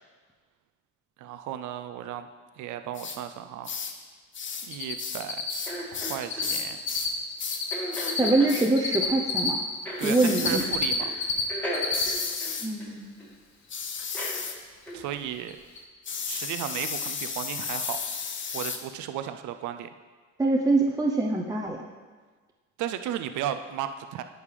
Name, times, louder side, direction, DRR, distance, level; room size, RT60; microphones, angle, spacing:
voice 1, 1.2-2.3 2.6-3.7 4.7-5.4 5.9-6.9 10.0-11.1 14.9-15.6 16.3-18.0 18.5-19.9 22.8-24.2, right 10 dB, 75° right, 9 dB, 0.5 m, -34 dB
sound 1, 3.0-3.2 3.6-4.0 4.3-4.7 5.0-7.1 7.4-7.6 7.9-8.2 8.5-8.7 10.0-10.7 11.9-12.7 13.7-14.6 16.1-18.8, left 6 dB, 40° left, 0.7 m, -34 dB
Cricket, 4.7-4.9 5.2-6.5 6.8-9.5 10.0-11.4 11.7-12.0 12.4-12.5 15.0-15.1 15.5-15.6 15.8-15.9, left 5 dB, 65° left, 1.2 m, -28 dB
sound 2, 5.7-6.5 7.7-8.6 9.9-10.7 11.0-11.2 11.5-13.3 14.1-14.4 14.9-15.0, equal, 5° left, 1.9 m, -36 dB
voice 2, 8.2-9.6 10.0-10.6 12.6-13.1 20.4-21.8, right 2 dB, 10° right, 0 dB, 0.6 m, -24 dB
9.8 x 5.3 x 3.3 m, 1.4 s
cardioid pair, 90°, 30 cm